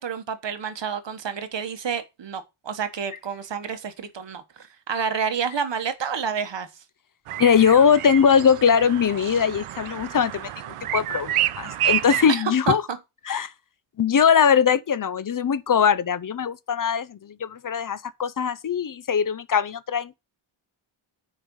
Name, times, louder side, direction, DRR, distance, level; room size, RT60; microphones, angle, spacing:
voice 1, 0.0-6.7 12.3-12.7, right 7 dB, 60° right, 1.3 m, -29 dB
sound 1, 7.3-12.3, right 12 dB, 90° right, 0.6 m, -29 dB
voice 2, 7.4-10.5 10.9-12.8 13.3-13.5 14.0-20.2, left 7 dB, 40° left, 0.6 m, -21 dB
8.8 x 5.0 x 5.5 m
wide cardioid pair, 125°, 50 cm